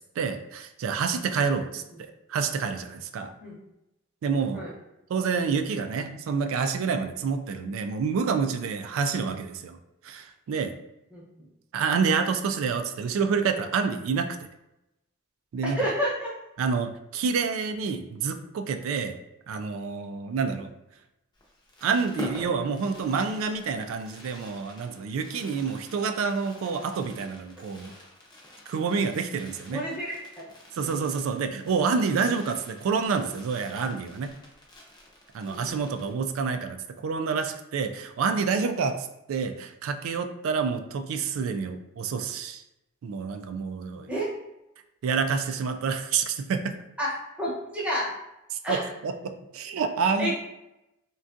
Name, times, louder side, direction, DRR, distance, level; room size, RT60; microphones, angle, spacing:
voice 1, 0.2-1.8 2.3-3.3 4.2-4.7 5.1-9.8 10.0-10.7 11.7-14.4 15.5-15.8 16.6-19.2 19.5-20.7 21.8-27.9 28.7-29.8 30.8-34.3 35.3-42.6 43.0-44.1 45.0-46.8 48.7-50.3, right 5 dB, 70° right, 7 dB, 0.3 m, -28 dB
voice 2, 11.1-11.5 15.7-16.3 29.7-30.5 35.5-35.8 44.1-44.3 47.0-48.1 48.6-48.8 50.2-50.3, equal, 5° right, -6 dB, 0.8 m, -30 dB
Fireworks, 21.3-36.5 36.8-36.9 37.1-37.4, left 1 dB, 20° left, 0.6 m, -46 dB
3.5 x 2.2 x 2.5 m, 0.91 s
head